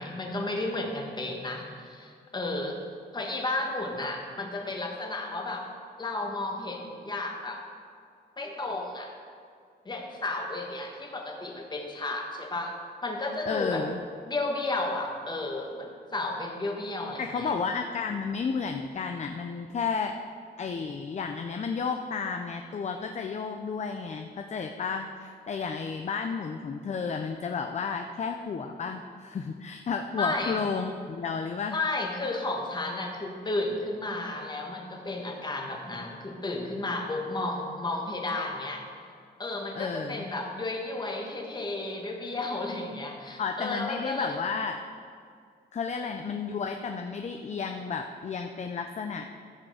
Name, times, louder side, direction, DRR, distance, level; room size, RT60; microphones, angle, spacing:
voice 1, 0.0-2.8 3.1-5.7 6.0-7.6 8.4-9.1 9.8-12.8 13.0-13.9 14.3-17.5 30.2-30.6 31.7-38.8 39.4-44.4, left 2 dB, 25° left, 1 dB, 1.5 m, -33 dB
voice 2, 13.5-14.0 17.2-20.2 20.6-31.8 39.7-40.3 43.4-44.8 45.7-49.3, left 5 dB, 40° left, 5 dB, 0.5 m, -32 dB
14.5 x 6.3 x 4.9 m, 2.2 s
wide cardioid pair, 145°, 18 cm